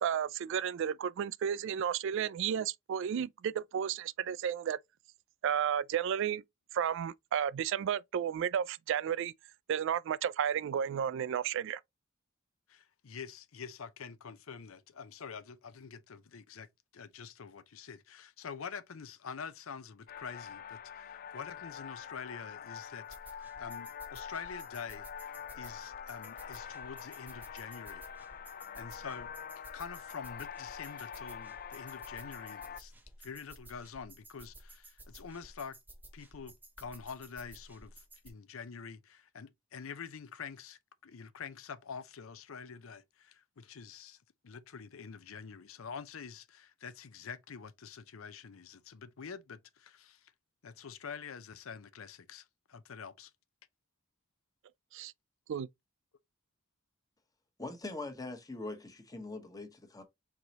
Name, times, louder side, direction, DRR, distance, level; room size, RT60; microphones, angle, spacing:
voice 1, 0.0-4.8 5.4-6.4 6.7-9.3 9.7-11.8 54.9-55.1 55.5-55.7, right 8 dB, 65° right, 0.3 m, -32 dB
voice 2, 12.7-23.3 23.6-28.1 28.4-29.3 29.7-32.9 33.2-35.8 36.1-44.2 44.4-50.3 50.6-53.3, left 6 dB, 90° left, 0.6 m, -46 dB
sound 1, 20.1-32.8, left 8 dB, 45° left, 0.4 m, -45 dB
sound 2, 23.1-38.3, right 1 dB, 10° right, 0.8 m, -54 dB
voice 3, 57.6-60.0, left 2 dB, 20° left, 1.0 m, -42 dB
4.7 x 4.0 x 2.8 m
head